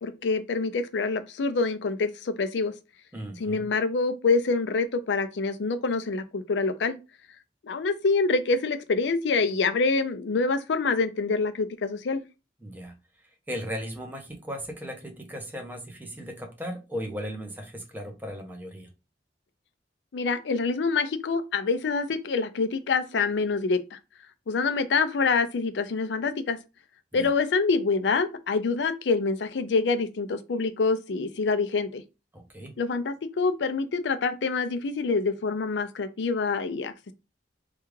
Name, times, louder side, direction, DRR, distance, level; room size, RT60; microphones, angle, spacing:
voice 1, 0.0-2.7 3.4-6.9 7.6-12.2 20.1-24.0 24.5-26.6 27.1-32.0 32.8-37.1, left 4 dB, 75° left, 0.5 m, -26 dB
voice 2, 3.1-3.7 12.6-12.9 13.5-18.9 27.1-27.3 32.3-32.8, equal, 10° right, 0.8 m, -37 dB
3.4 x 2.3 x 3.1 m
head